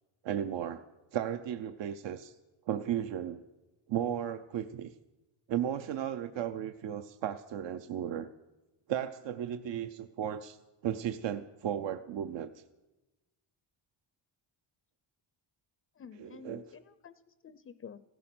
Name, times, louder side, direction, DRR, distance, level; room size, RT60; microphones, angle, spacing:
voice 1, 0.2-0.8 1.1-2.4 2.7-3.4 3.9-4.9 5.5-8.3 8.9-10.6 10.8-12.6 16.2-16.6, right 10 dB, 65° right, 10 dB, 0.7 m, -35 dB
voice 2, 15.9-18.0, left 7 dB, 30° left, 14 dB, 0.5 m, -50 dB
16.0 x 14.0 x 6.1 m, 1.1 s
cardioid pair, 140°, 47 cm